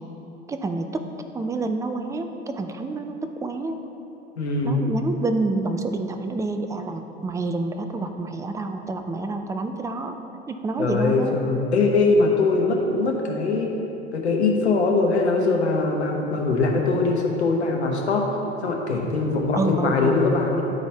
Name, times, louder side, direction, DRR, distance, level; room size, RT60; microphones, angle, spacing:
voice 1, 0.5-1.0 1.3-3.8 4.6-10.2 10.5-11.3 19.5-20.2, right 3 dB, 10° right, 7 dB, 0.4 m, -28 dB
voice 2, 4.4-4.8 10.8-13.7 14.1-18.3 18.6-20.6, left 3 dB, 80° left, 0 dB, 1.1 m, -22 dB
11.5 x 4.2 x 3.4 m, 2.9 s
hypercardioid pair, 85°, 33 cm